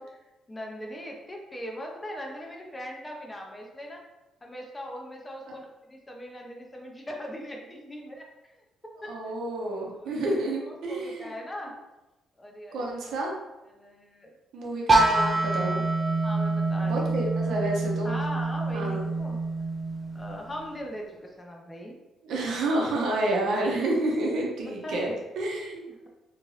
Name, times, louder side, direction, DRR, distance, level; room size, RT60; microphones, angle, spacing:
voice 1, 0.5-4.0 4.4-8.6 9.0-9.1 10.0-10.4 10.6-11.7 12.4-12.9 13.7-14.3 16.2-17.6 18.0-19.4 20.1-22.0 22.3-22.5 24.6-25.1 25.9-26.1, equal, 20° left, 0 dB, 0.6 m, -40 dB
voice 2, 9.1-11.3 12.7-13.3 14.5-15.8 16.8-18.2 18.7-19.1 22.2-26.1, right 2 dB, 80° right, -1 dB, 0.7 m, -29 dB
sound 1, 14.9-20.7, right 2 dB, 30° right, 0.5 m, -26 dB
2.9 x 2.5 x 3.1 m, 1.0 s
cardioid pair, 90°, 0 cm